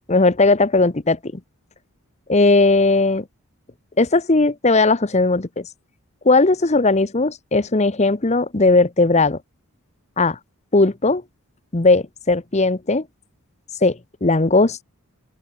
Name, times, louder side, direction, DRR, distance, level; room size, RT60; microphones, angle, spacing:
voice 1, 0.1-1.2 2.3-3.2 4.0-5.7 6.2-9.4 10.2-10.4 10.7-11.2 11.7-13.0 13.8-14.8, left 3 dB, 30° left, 0.9 m, -17 dB
open air
head